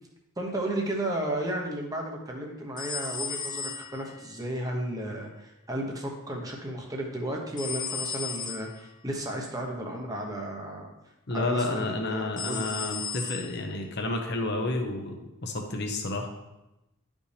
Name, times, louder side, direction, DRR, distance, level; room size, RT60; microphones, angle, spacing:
voice 1, 0.4-10.9 11.3-12.7, right 1 dB, 15° right, 0 dB, 1.0 m, -33 dB
sound 1, 2.8-4.4 7.6-8.8 12.4-13.7, left 6 dB, 20° left, 0.4 m, -35 dB
voice 2, 11.3-15.2 15.4-16.3, left 2 dB, 50° left, 3 dB, 1.0 m, -30 dB
11.0 x 5.3 x 3.4 m, 0.94 s
head